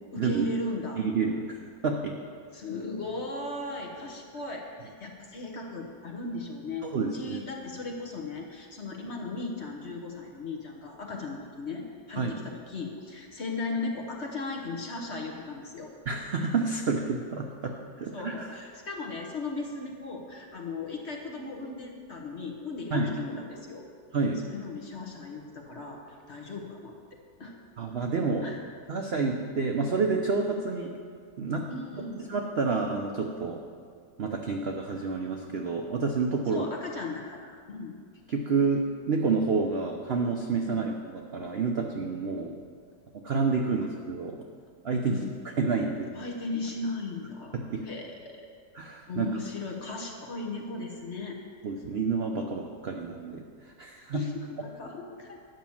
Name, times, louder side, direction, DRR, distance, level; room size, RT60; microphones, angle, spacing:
voice 1, 0.1-1.0 2.5-15.9 18.1-23.8 24.4-26.9 27.4-27.6 28.4-28.6 31.7-32.3 36.5-37.9 40.7-40.9 45.0-45.3 46.1-47.6 47.8-48.5 49.1-51.4 54.1-55.4, left 2 dB, 45° left, 1 dB, 1.2 m, -37 dB
voice 2, 1.0-1.5 1.8-2.2 6.9-7.4 12.1-12.3 16.1-18.5 22.9-23.1 24.1-24.4 27.8-28.5 28.9-30.9 31.4-31.6 31.9-32.0 32.3-33.6 34.2-36.6 38.3-42.5 43.2-44.4 44.8-45.2 45.6-46.2 47.5-47.8 48.7-49.3 51.6-54.2, right 4 dB, 65° right, 2 dB, 0.6 m, -29 dB
10.5 x 6.0 x 7.1 m, 2.1 s
omnidirectional pair, 1.9 m